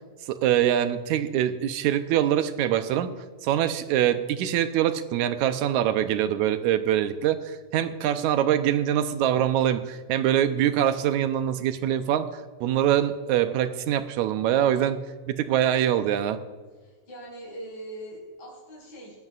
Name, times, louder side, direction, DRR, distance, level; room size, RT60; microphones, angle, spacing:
voice 1, 0.3-3.1 3.4-12.3 12.6-15.0 15.3-16.4, right 11 dB, 80° right, 10 dB, 2.1 m, -24 dB
voice 2, 14.5-14.9 16.8-19.1, right 1 dB, 50° left, -6 dB, 5.8 m, -41 dB
22.5 x 13.0 x 2.5 m, 1.4 s
omnidirectional pair, 3.4 m